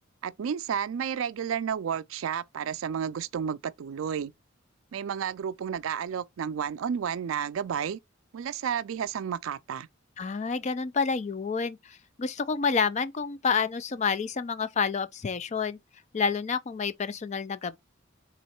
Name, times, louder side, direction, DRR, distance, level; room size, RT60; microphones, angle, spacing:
voice 1, 0.2-4.3 4.9-8.0 8.3-9.9, right 7 dB, 90° right, 0.4 m, -31 dB
voice 2, 10.2-15.8 16.1-17.8, left 5 dB, 35° left, 0.4 m, -29 dB
3.8 x 3.1 x 4.3 m
head